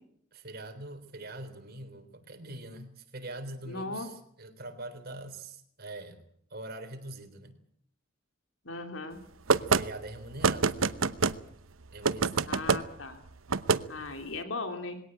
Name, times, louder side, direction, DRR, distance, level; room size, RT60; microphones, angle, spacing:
voice 1, 0.3-7.6 9.6-10.7 11.9-12.6, right 2 dB, 50° right, 7 dB, 3.8 m, -43 dB
voice 2, 3.6-4.1 8.6-9.2 12.5-13.2 13.9-15.0, left 3 dB, 70° left, 6 dB, 3.0 m, -37 dB
sound 1, 9.5-9.8 10.4-11.4 12.0-12.8 13.5-13.8, right 4 dB, 90° right, 0.9 m, -25 dB
21.5 x 17.5 x 8.8 m, 0.66 s
head